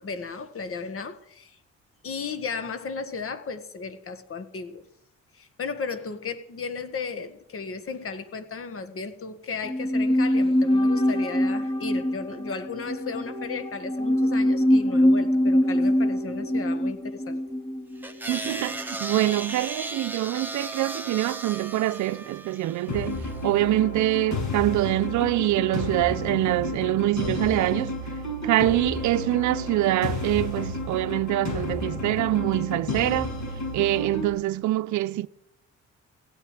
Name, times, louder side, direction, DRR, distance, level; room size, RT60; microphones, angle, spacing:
voice 1, 0.0-1.6 2.0-4.8 5.3-17.4 18.3-18.4, left 4 dB, 45° left, 1.7 m, -35 dB
sound 1, 9.6-19.0 19.2-19.3, left 1 dB, 20° left, 2.0 m, -24 dB
sound 2, 18.0-23.4, right 2 dB, 5° right, 1.5 m, -36 dB
voice 2, 18.3-27.9 28.4-33.3 33.7-35.3, right 15 dB, 75° right, 0.6 m, -25 dB
sound 3, 22.9-34.3, left 2 dB, 65° left, 7.1 m, -32 dB
16.0 x 9.2 x 9.1 m
cardioid pair, 90°, 30 cm